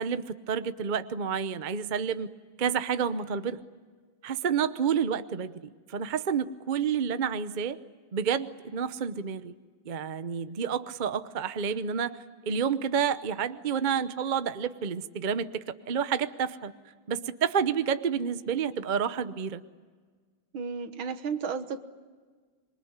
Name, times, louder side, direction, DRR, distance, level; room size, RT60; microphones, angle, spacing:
voice 1, 0.0-2.3 2.6-3.6 4.2-5.5 5.9-7.8 8.1-9.5 9.8-16.7 17.1-19.6, right 7 dB, 55° right, 12 dB, 0.5 m, -29 dB
voice 2, 20.5-21.8, right 5 dB, 80° right, 10 dB, 2.1 m, -33 dB
26.5 x 23.0 x 9.6 m, 1.5 s
omnidirectional pair, 2.2 m